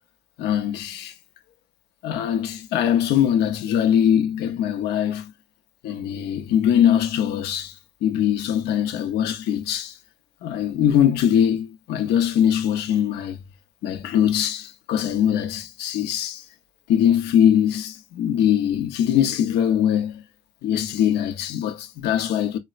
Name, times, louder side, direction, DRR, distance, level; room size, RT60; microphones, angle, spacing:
voice 1, 0.4-1.1 2.0-5.3 5.8-7.7 8.0-9.9 10.4-13.4 13.8-16.4 16.9-20.2 20.6-22.6, left 9 dB, 80° left, 0.6 m, -22 dB
4.1 x 2.1 x 2.4 m
cardioid pair, 110°, 17 cm